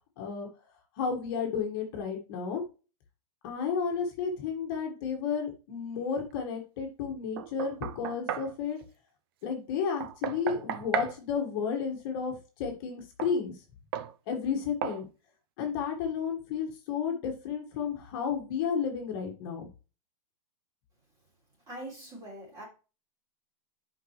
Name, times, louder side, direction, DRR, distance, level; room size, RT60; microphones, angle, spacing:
voice 1, 0.2-0.5 1.0-2.6 3.4-8.8 9.4-13.5 14.3-15.0 15.6-19.7, left 6 dB, 40° left, 1.6 m, -32 dB
Knock, 7.4-8.5 10.0-11.2 13.2-13.4 13.9-14.1 14.8-15.0, right 10 dB, 40° right, 0.5 m, -34 dB
voice 2, 21.7-22.7, right 1 dB, 20° right, 3.2 m, -42 dB
9.5 x 5.3 x 3.1 m
supercardioid pair, 170°, 18 cm